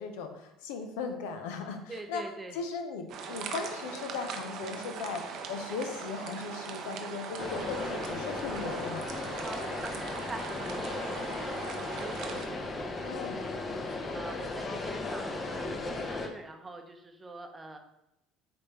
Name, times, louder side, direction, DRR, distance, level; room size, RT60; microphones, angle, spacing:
voice 1, 0.0-2.2 2.5-9.1 13.0-13.4, left 5 dB, 75° left, 6 dB, 0.6 m, -37 dB
voice 2, 1.6-2.6 9.4-11.6 11.9-13.4 14.1-17.8, right 3 dB, 20° right, 4 dB, 0.7 m, -44 dB
sound 1, 3.1-12.5, right 5 dB, 60° right, 0.6 m, -40 dB
sound 2, 7.4-16.3, left 3 dB, 30° left, 0.7 m, -36 dB
5.1 x 3.3 x 3.0 m, 0.85 s
hypercardioid pair, 70°, 0 cm